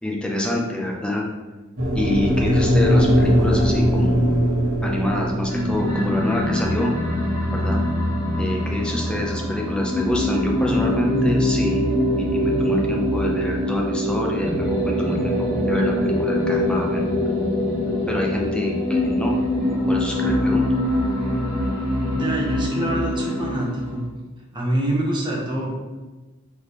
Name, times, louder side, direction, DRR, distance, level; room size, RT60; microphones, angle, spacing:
voice 1, 0.0-1.2 1.9-4.4 4.8-6.9 7.5-7.8 8.4-11.8 12.1-15.4 15.6-17.5 18.1-19.3 19.9-20.6, left 1 dB, 5° left, -1 dB, 0.5 m, -26 dB
sound 1, 1.8-10.0, equal, 80° right, 1.3 m, -21 dB
sound 2, 5.4-24.0, left 1 dB, 20° left, 1.2 m, -23 dB
voice 2, 22.1-24.0 24.5-25.7, right 1 dB, 20° right, -3 dB, 0.9 m, -25 dB
4.0 x 3.4 x 3.1 m, 1.2 s
head